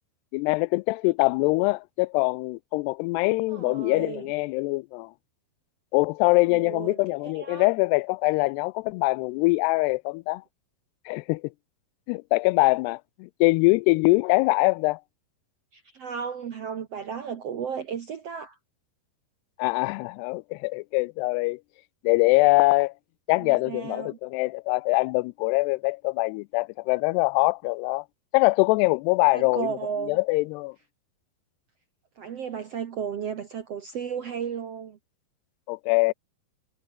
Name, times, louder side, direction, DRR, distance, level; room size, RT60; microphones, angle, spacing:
voice 1, 0.3-5.1 5.9-10.4 11.1-11.4 12.1-15.0 19.6-21.6 22.0-22.9 23.3-28.1 28.3-29.7 30.1-30.8 35.7-36.1, left 25 dB, 85° left, 2.6 m, -23 dB
voice 2, 3.5-4.3 6.5-7.7 15.7-18.6 23.4-24.2 29.3-30.2 32.2-35.0, right 7 dB, 65° right, 1.6 m, -34 dB
omnidirectional pair, 4.7 m